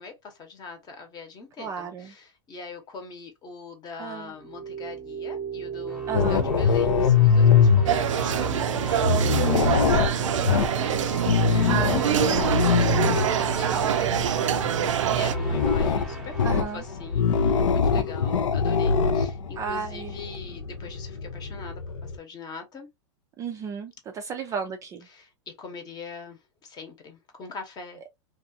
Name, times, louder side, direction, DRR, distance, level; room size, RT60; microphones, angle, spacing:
voice 1, 0.0-6.0 6.3-9.8 10.2-10.9 11.5-22.9 25.1-28.0, left 4 dB, 25° left, 0.9 m, -42 dB
voice 2, 1.6-2.1 4.0-4.3 6.1-6.5 10.5-10.7 11.5-12.6 16.4-16.8 19.6-20.1 23.4-25.1, right 6 dB, 20° right, 0.3 m, -34 dB
sound 1, 4.3-17.4, right 4 dB, ahead, 0.7 m, -36 dB
sound 2, 6.1-22.2, left 6 dB, 85° left, 0.5 m, -24 dB
sound 3, 7.9-15.4, right 10 dB, 90° right, 0.4 m, -25 dB
2.4 x 2.4 x 2.6 m
hypercardioid pair, 125°, 16 cm